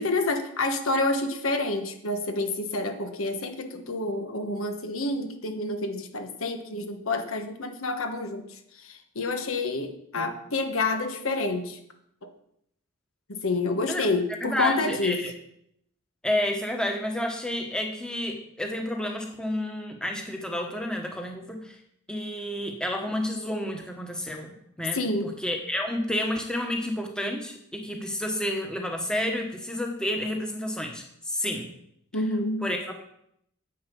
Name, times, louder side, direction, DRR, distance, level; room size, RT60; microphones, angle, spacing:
voice 1, 0.0-11.8 12.2-12.3 13.3-15.2 24.9-25.3 32.1-32.7, left 2 dB, 80° left, 6 dB, 1.3 m, -28 dB
voice 2, 14.4-15.3 16.2-21.8 22.1-31.7 32.6-33.0, left 1 dB, 5° left, 2 dB, 1.2 m, -30 dB
9.7 x 7.9 x 5.4 m, 0.73 s
head